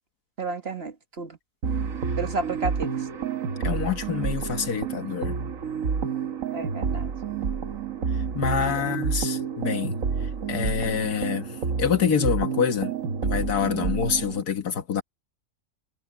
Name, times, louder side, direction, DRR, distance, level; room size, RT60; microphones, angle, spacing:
voice 1, 0.4-1.4 2.2-2.9 6.5-7.1 8.5-8.9, right 3 dB, 40° right, 1.8 m, -32 dB
sound 1, 1.6-14.4, right 6 dB, 60° right, 1.7 m, -29 dB
voice 2, 3.6-5.4 8.3-10.0 10.5-12.9 13.2-15.0, left 7 dB, 90° left, 2.0 m, -26 dB
omnidirectional pair, 1.6 m